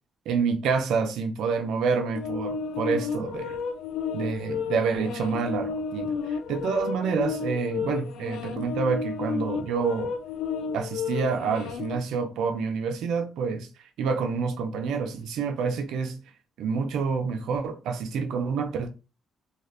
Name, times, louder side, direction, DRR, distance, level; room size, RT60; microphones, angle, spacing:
voice 1, 0.3-3.6 4.1-10.1 10.7-13.7 14.0-16.2 16.6-18.9, right 5 dB, 80° right, 0.5 m, -28 dB
sound 1, 2.1-12.0, left 6 dB, 85° left, 0.3 m, -32 dB
2.7 x 2.4 x 3.2 m
cardioid pair, 90°, 0 cm